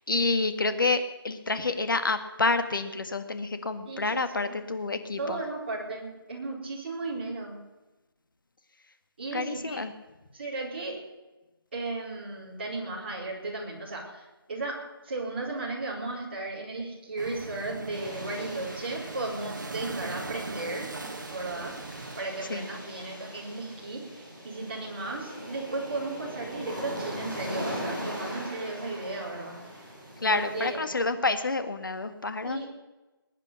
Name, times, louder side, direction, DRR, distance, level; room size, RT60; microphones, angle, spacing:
voice 1, 0.1-5.4 9.3-9.9 22.5-22.7 30.2-32.7, left 3 dB, 55° left, 9 dB, 1.8 m, -28 dB
voice 2, 3.8-4.5 5.2-7.6 9.2-9.8 10.3-11.0 11.7-20.9 21.3-21.7 22.2-29.8 30.3-30.8 32.4-32.7, right 2 dB, 25° right, -5 dB, 4.6 m, -35 dB
sound 1, 17.2-22.2, right 3 dB, 50° right, 1.9 m, -40 dB
sound 2, 17.9-30.7, equal, 5° left, 3.5 m, -40 dB
21.5 x 9.6 x 7.0 m, 1.1 s
hypercardioid pair, 180°, 13 cm